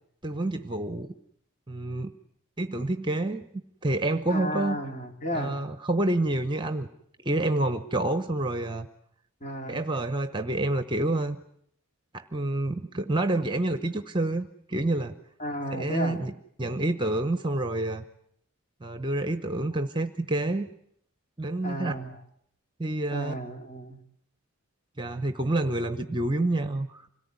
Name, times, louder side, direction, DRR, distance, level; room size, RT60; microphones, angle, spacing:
voice 1, 0.2-1.1 1.7-2.1 2.6-3.4 3.8-4.8 5.3-6.9 7.2-8.9 9.7-11.4 12.1-15.1 15.7-16.3 16.6-18.0 18.8-20.6 21.4-21.9 22.8-23.3 25.0-27.1, right 2 dB, 20° right, 10 dB, 1.0 m, -28 dB
voice 2, 4.3-5.6 9.4-9.8 15.4-16.2 21.6-22.2 23.1-24.0, equal, 35° left, 3 dB, 3.7 m, -33 dB
26.0 x 18.0 x 9.6 m, 0.69 s
head